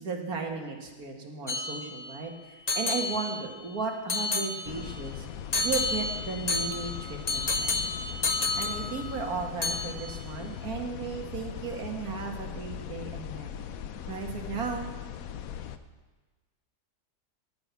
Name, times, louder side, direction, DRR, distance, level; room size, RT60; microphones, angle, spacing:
voice 1, 0.0-5.3 5.6-7.7 8.6-13.5 14.1-14.9, right 5 dB, 65° right, 2 dB, 2.2 m, -35 dB
sound 1, 1.5-2.2 2.7-3.7 4.1-5.0 5.5-9.3 9.6-10.2, left 3 dB, 40° left, 0.6 m, -31 dB
sound 2, 4.6-15.8, left 9 dB, 65° left, 1.0 m, -39 dB
17.0 x 6.3 x 8.2 m, 1.3 s
omnidirectional pair, 1.7 m